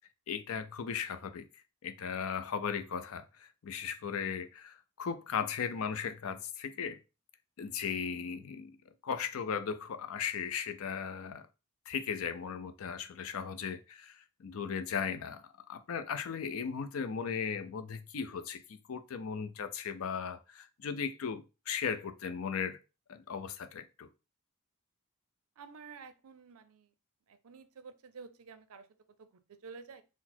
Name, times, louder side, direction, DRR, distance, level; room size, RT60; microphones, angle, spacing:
voice 1, 0.3-1.4 1.8-7.0 7.6-8.7 9.0-11.4 11.9-18.6 18.9-22.8 23.1-24.1, left 6 dB, 65° left, 0.5 m, -37 dB
voice 2, 25.6-26.9 27.3-28.9 29.2-30.0, right 5 dB, 70° right, 0.5 m, -51 dB
4.0 x 2.0 x 4.3 m
head